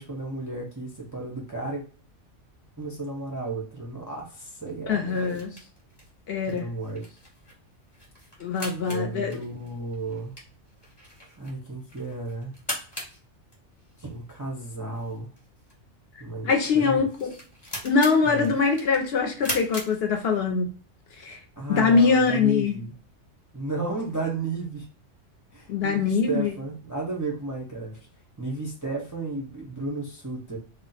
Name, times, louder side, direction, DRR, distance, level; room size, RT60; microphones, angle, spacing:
voice 1, 0.0-1.8 2.8-5.7 6.5-7.2 8.8-10.3 11.4-12.5 14.0-15.3 16.2-16.5 16.7-17.0 18.2-18.5 21.6-22.9 23.5-24.9 25.5-28.0 28.4-30.6, right 2 dB, 25° right, 0.4 m, -33 dB
voice 2, 4.9-5.5 6.3-6.7 8.4-9.4 16.5-17.3 17.8-20.7 21.2-21.4 21.7-22.8 25.7-26.5, left 5 dB, 60° left, 0.8 m, -23 dB
sound 1, 5.1-20.7, left 1 dB, 20° left, 0.9 m, -41 dB
2.4 x 2.1 x 3.9 m
omnidirectional pair, 1.3 m